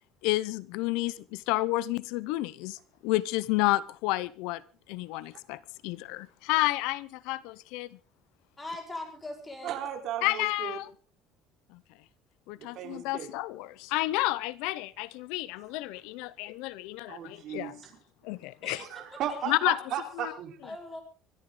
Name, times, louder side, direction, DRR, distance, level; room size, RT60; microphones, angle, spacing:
voice 1, 0.2-4.6 4.9-8.0 10.2-10.9 11.7-11.8 12.5-17.8 18.2-18.9 19.5-19.8 20.2-20.3, left 18 dB, 85° left, 0.8 m, -30 dB
voice 2, 8.6-9.7 18.8-18.9 19.5-19.6 20.6-21.0, left 2 dB, 15° left, 4.8 m, -40 dB
voice 3, 9.6-10.8 12.5-13.3 17.1-17.9 18.6-20.6, right 9 dB, 50° right, 3.8 m, -36 dB
25.0 x 13.0 x 3.8 m
cardioid pair, 160°, 0 cm